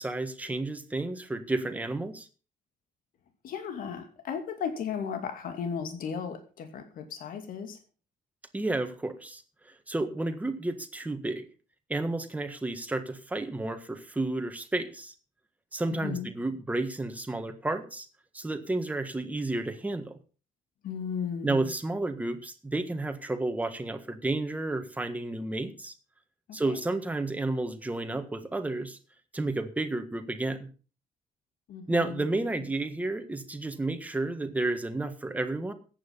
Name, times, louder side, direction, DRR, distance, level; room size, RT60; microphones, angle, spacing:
voice 1, 0.0-2.3 8.5-9.4 9.9-11.4 11.9-15.1 15.7-18.1 18.3-20.2 21.4-25.9 26.5-29.0 29.3-30.7 31.9-35.7, right 2 dB, 10° right, 7 dB, 1.6 m, -31 dB
voice 2, 3.4-7.8 15.9-16.3 20.8-21.7 26.5-26.8 31.7-32.3, left 7 dB, 75° left, 6 dB, 2.5 m, -35 dB
14.0 x 9.1 x 5.4 m, 0.36 s
cardioid pair, 145°, 15 cm